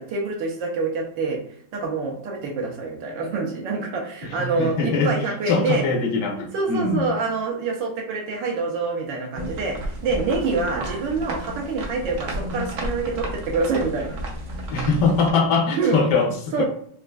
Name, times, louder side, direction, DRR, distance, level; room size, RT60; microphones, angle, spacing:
voice 1, 0.0-1.4 1.7-5.9 6.5-14.2 15.8-16.0 16.5-16.6, right 4 dB, 80° right, 1 dB, 1.5 m, -26 dB
voice 2, 4.2-5.1 5.5-7.1 14.7-16.6, left 4 dB, 70° left, 3 dB, 1.1 m, -22 dB
sound 1, 9.3-15.3, right 1 dB, 60° right, 0.8 m, -32 dB
4.2 x 2.5 x 2.2 m, 0.62 s
omnidirectional pair, 2.0 m